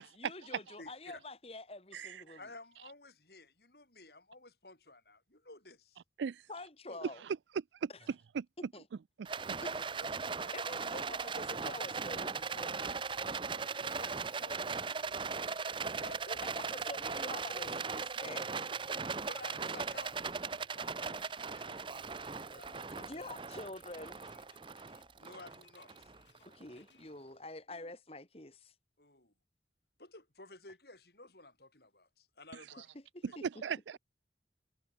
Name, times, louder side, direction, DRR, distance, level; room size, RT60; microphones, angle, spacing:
voice 1, 0.0-2.4 6.5-7.2 8.6-8.8 9.6-9.7 10.1-10.2 10.5-12.9 16.4-18.5 21.0-21.1 23.0-24.2 26.4-28.7 32.9-33.4, left 2 dB, 35° left, 2.7 m, -47 dB
voice 2, 0.8-1.2 2.4-6.0 6.9-7.0 9.6-10.6 11.0-11.1 13.5-16.9 18.7-21.2 21.5-23.2 25.2-26.1 27.7-27.9 29.0-29.3 30.0-32.9 33.3-33.4, left 2 dB, 60° left, 6.0 m, -55 dB
voice 3, 1.9-2.4 6.2-6.4 7.0-7.4 7.8-7.9 8.3-8.5 33.2-34.0, right 6 dB, 85° right, 0.4 m, -37 dB
Rattle, 9.2-26.6, right 5 dB, 30° right, 0.7 m, -38 dB
sound 1, 11.0-27.0, left 6 dB, 85° left, 3.0 m, -67 dB
head